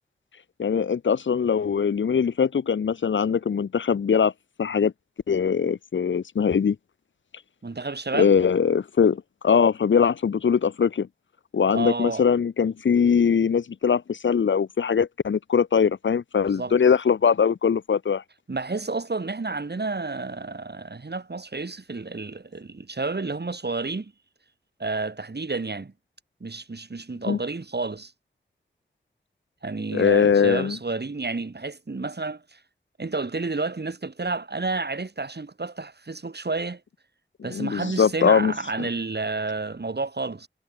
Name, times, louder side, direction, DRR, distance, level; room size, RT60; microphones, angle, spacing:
voice 1, 0.6-4.3 4.6-4.9 5.3-6.8 8.1-11.1 11.5-18.2 27.3-27.4 29.9-30.8 37.4-38.5 38.8-38.9, left 6 dB, 80° left, 0.7 m, -21 dB
voice 2, 7.6-8.3 11.7-12.2 16.5-16.7 18.5-24.1 24.8-25.9 26.4-28.1 29.6-32.6 33.0-36.8 37.4-40.5, right 3 dB, 60° right, 5.5 m, -30 dB
cardioid pair, 45°, 19 cm